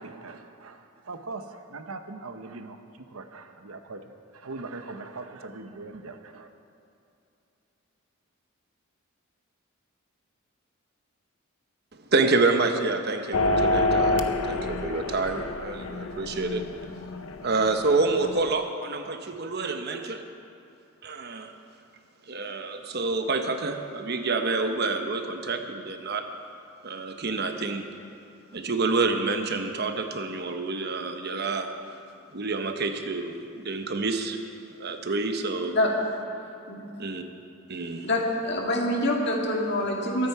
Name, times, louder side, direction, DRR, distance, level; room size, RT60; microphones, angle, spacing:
voice 1, 0.0-6.5, right 3 dB, 90° right, 7 dB, 1.0 m, -41 dB
voice 2, 12.1-16.6 17.4-20.2 21.0-21.5 22.3-26.2 26.8-27.9 28.5-31.7 32.3-34.4 34.7-35.7 37.0-37.2 37.7-38.1, right 3 dB, 50° right, 6 dB, 1.0 m, -28 dB
sound 1, 13.3-18.5, left 2 dB, 75° left, 0.8 m, -28 dB
voice 3, 38.0-40.3, left 1 dB, 50° left, -1 dB, 2.2 m, -25 dB
22.5 x 8.8 x 4.8 m, 2.7 s
head